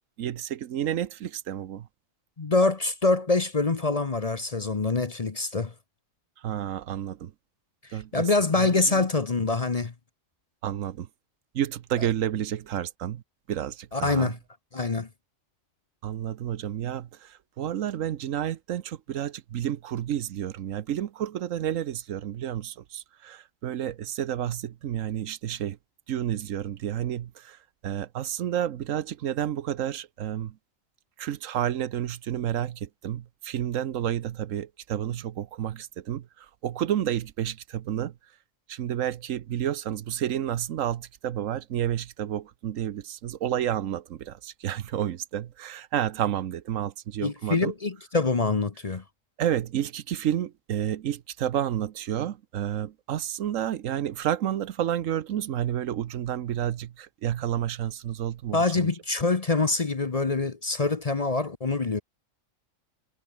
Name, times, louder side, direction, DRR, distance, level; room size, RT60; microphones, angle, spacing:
voice 1, 0.2-1.9 6.4-7.3 7.9-8.2 8.6-9.1 10.6-11.1 11.5-13.2 13.5-14.3 16.0-25.8 26.1-27.6 27.8-30.5 31.2-36.2 36.6-38.1 38.7-47.7 49.4-58.9, right 10 dB, 75° right, 1.1 m, -30 dB
voice 2, 2.4-5.7 7.9-9.9 12.0-12.1 13.9-14.4 14.7-15.1 47.2-49.0 58.5-62.0, left 3 dB, 30° left, 0.9 m, -25 dB
omnidirectional pair, 1.4 m